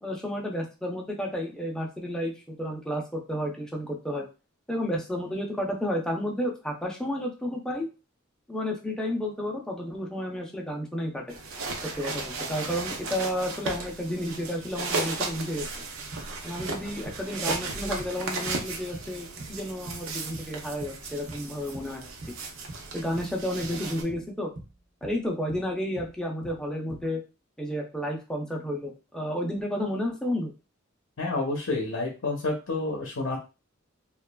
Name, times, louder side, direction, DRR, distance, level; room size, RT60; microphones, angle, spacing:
voice 1, 0.0-4.3 4.7-7.9 8.5-11.4 12.0-15.7 16.4-22.1 22.9-24.5 25.0-27.2 27.6-30.5, equal, 5° left, -1 dB, 0.5 m, -31 dB
sound 1, 11.3-24.0, right 3 dB, 80° right, 0.6 m, -35 dB
sound 2, 15.8-15.9 16.1-16.8 17.1-17.7 18.0-18.2 18.5-18.7 18.9-19.6 19.9-21.0 21.3-22.0 22.2-22.9 23.1-23.4 23.6-24.3 24.6-25.2 25.5-25.7 26.0-26.2 26.4-27.1, right 1 dB, 40° right, 0.6 m, -43 dB
voice 2, 31.2-33.4, left 2 dB, 75° left, 0 dB, 0.7 m, -29 dB
2.9 x 2.3 x 2.2 m, 0.30 s
head